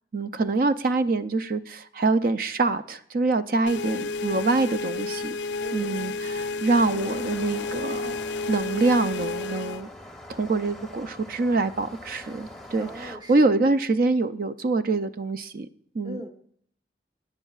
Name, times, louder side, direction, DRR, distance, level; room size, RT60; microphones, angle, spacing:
voice 1, 0.1-5.4 5.7-8.2 8.5-9.9 10.3-15.7 15.9-16.2, right 3 dB, 50° right, 12 dB, 0.4 m, -25 dB
sound 1, 3.7-9.8, left 3 dB, 75° left, 0.4 m, -31 dB
voice 2, 5.6-6.0 12.8-13.5 16.0-16.3, equal, 25° right, 4 dB, 1.0 m, -40 dB
sound 2, 6.7-13.2, left 1 dB, ahead, 0.8 m, -44 dB
18.0 x 9.9 x 2.4 m, 0.64 s
head